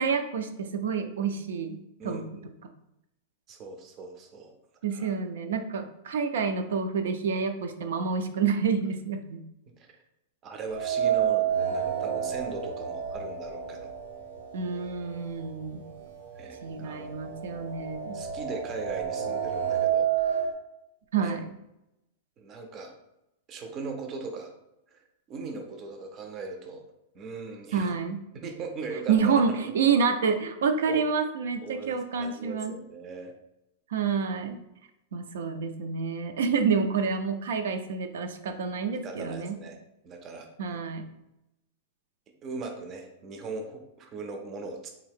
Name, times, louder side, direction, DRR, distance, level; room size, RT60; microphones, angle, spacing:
voice 1, 0.0-1.8 2.0-2.3 4.8-9.4 14.5-15.8 16.6-18.2 21.1-21.4 27.7-28.2 29.1-32.7 33.9-34.6 35.1-39.6 40.6-41.1, right 5 dB, 85° right, 7 dB, 0.4 m, -28 dB
voice 2, 2.0-2.5 3.5-4.5 4.9-5.2 9.8-9.9 10.4-13.9 16.3-17.1 18.1-20.4 21.2-21.4 22.4-22.9 23.5-24.5 24.9-25.0 25.3-26.8 27.1-28.0 28.3-29.7 30.9-31.0 31.6-33.3 39.0-39.8 40.0-40.5 42.4-44.9, right 3 dB, 20° right, 4 dB, 0.4 m, -39 dB
sound 1, 10.7-14.8 15.1-15.2 16.2-16.3 16.7-20.5, right 9 dB, 65° right, 0.9 m, -29 dB
3.6 x 2.7 x 3.5 m, 0.87 s
supercardioid pair, 180°, 0 cm